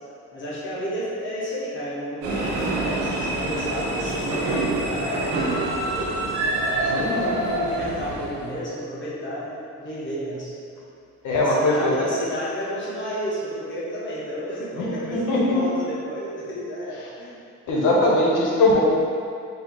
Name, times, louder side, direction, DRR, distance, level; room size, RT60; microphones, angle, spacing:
voice 1, 0.3-5.3 5.8-6.2 6.5-10.5 11.4-17.4, equal, 40° left, -8 dB, 1.3 m, -31 dB
sound 1, 2.2-8.5, right 2 dB, 80° right, 0.9 m, -26 dB
voice 2, 6.9-7.4 11.2-11.9 14.8-15.6 17.7-18.8, left 2 dB, 85° left, -3 dB, 0.9 m, -21 dB
4.4 x 2.8 x 3.9 m, 2.4 s
cardioid pair, 90°, 30 cm